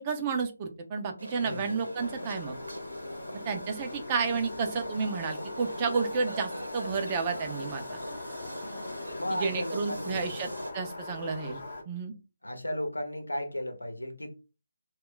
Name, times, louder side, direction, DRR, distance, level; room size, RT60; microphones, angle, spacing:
voice 1, 0.0-2.5 3.5-7.8 9.3-10.5 10.7-11.6 11.9-12.1, right 5 dB, 25° right, 0.5 m, -31 dB
sound 1, 1.2-10.7, right 1 dB, 85° right, 0.8 m, -41 dB
voice 2, 1.4-1.8 9.2-10.4 12.4-14.3, left 1 dB, 85° left, 0.8 m, -35 dB
sound 2, 2.0-11.8, left 3 dB, 50° left, 0.8 m, -41 dB
2.3 x 2.2 x 3.8 m
figure-of-eight pair, 150°, 0 cm